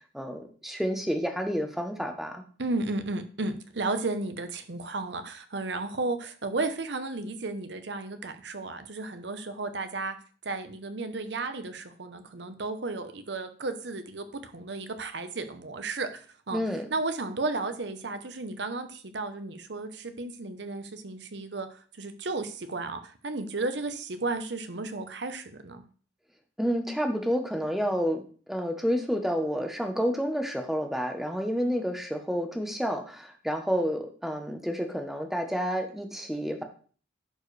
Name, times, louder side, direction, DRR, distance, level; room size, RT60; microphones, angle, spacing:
voice 1, 0.1-2.4 16.5-16.9 26.6-28.2 28.5-36.6, equal, ahead, 5 dB, 0.9 m, -29 dB
voice 2, 2.6-10.2 10.4-16.6 16.9-25.8, right 3 dB, 65° right, 9 dB, 0.8 m, -33 dB
11.0 x 4.6 x 3.3 m, 0.42 s
head